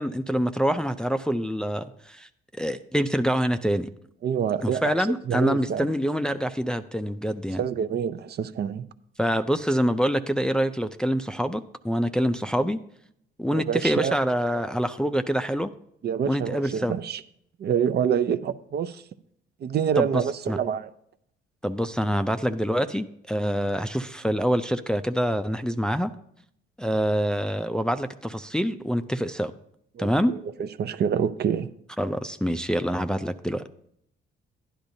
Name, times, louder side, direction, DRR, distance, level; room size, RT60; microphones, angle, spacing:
voice 1, 0.0-2.3 2.6-3.9 4.6-7.6 9.2-12.8 13.4-15.7 16.3-16.9 20.0-20.2 20.5-20.6 21.6-26.1 26.8-29.5 30.0-30.3 32.0-33.7, equal, 5° left, 0.4 m, -26 dB
voice 2, 4.2-5.9 7.6-8.8 13.5-14.2 16.0-17.2 17.6-19.0 19.6-20.9 29.9-31.7, right 8 dB, 55° right, 0.6 m, -27 dB
11.5 x 10.5 x 2.7 m
cardioid pair, 90°, 20 cm